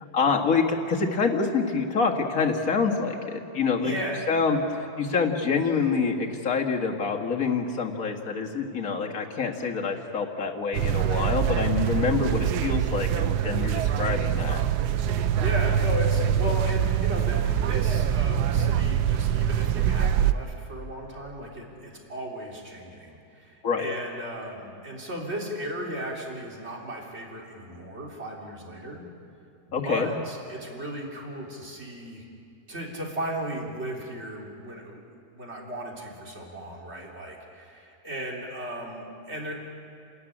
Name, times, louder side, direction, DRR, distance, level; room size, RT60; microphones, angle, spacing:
voice 1, 0.1-3.9 4.3-14.6 23.6-23.9 29.7-30.1, left 5 dB, 60° left, 2 dB, 2.2 m, -26 dB
voice 2, 3.8-4.3 15.0-29.0 29.7-32.3 32.7-39.5, right 1 dB, 40° right, -1 dB, 3.8 m, -36 dB
sound 1, 10.7-20.3, right 9 dB, 80° right, 1.3 m, -24 dB
29.0 x 13.5 x 9.9 m, 2.5 s
omnidirectional pair, 1.7 m